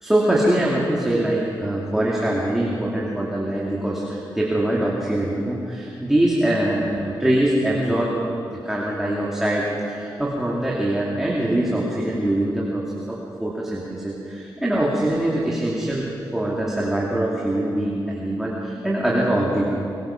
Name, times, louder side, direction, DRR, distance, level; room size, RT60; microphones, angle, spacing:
voice 1, 0.0-8.2 8.5-16.1 16.3-19.6, right 1 dB, 5° right, -5 dB, 2.6 m, -23 dB
23.0 x 20.5 x 5.9 m, 2.6 s
wide cardioid pair, 170°, 8 cm